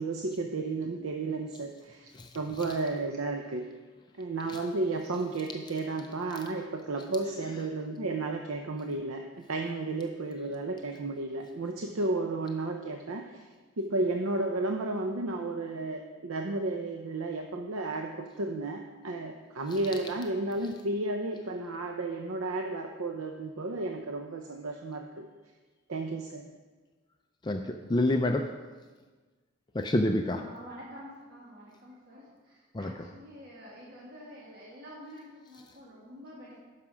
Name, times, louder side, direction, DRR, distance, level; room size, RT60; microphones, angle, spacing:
voice 1, 0.0-2.1 2.3-3.7 4.2-13.5 13.8-25.3 25.9-26.5, right 2 dB, 85° right, 4 dB, 0.7 m, -33 dB
voice 2, 27.4-28.5 29.7-30.4 32.7-32.9, left 1 dB, 20° left, 4 dB, 0.4 m, -27 dB
voice 3, 30.3-36.6, equal, 45° right, -6 dB, 1.9 m, -48 dB
11.5 x 6.0 x 4.9 m, 1.3 s
head